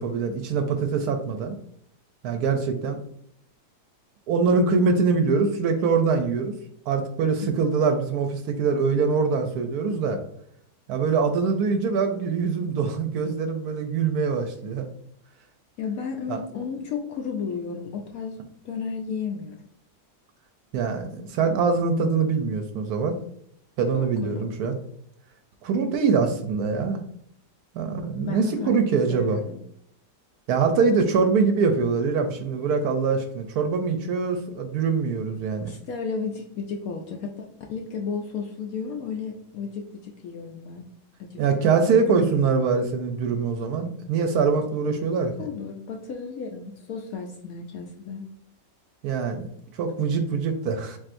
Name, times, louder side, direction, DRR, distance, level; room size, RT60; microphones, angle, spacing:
voice 1, 0.0-1.6 2.2-3.0 4.3-6.5 6.9-10.2 10.9-14.9 16.3-16.4 20.7-23.2 23.8-24.7 25.6-27.0 27.7-29.4 30.5-35.7 41.4-45.3 49.0-49.5 49.8-51.0, right 5 dB, 70° right, 6 dB, 1.0 m, -23 dB
voice 2, 15.8-19.6 23.9-24.5 28.2-28.8 29.1-29.6 35.6-40.8 41.2-41.9 45.4-48.2, left 5 dB, 70° left, 2 dB, 0.9 m, -33 dB
7.2 x 2.6 x 2.5 m, 0.70 s
omnidirectional pair, 1.9 m